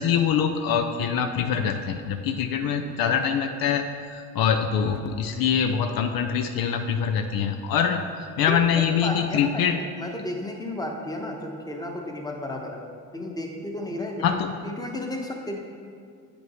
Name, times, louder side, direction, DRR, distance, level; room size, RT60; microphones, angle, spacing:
voice 1, 0.0-8.0 8.4-9.8 14.2-14.5, left 7 dB, 65° left, 5 dB, 0.5 m, -24 dB
voice 2, 8.5-12.9 13.1-14.3 14.6-15.6, left 1 dB, 10° left, 1 dB, 1.0 m, -33 dB
8.2 x 5.2 x 3.1 m, 2.2 s
supercardioid pair, 70°, 38 cm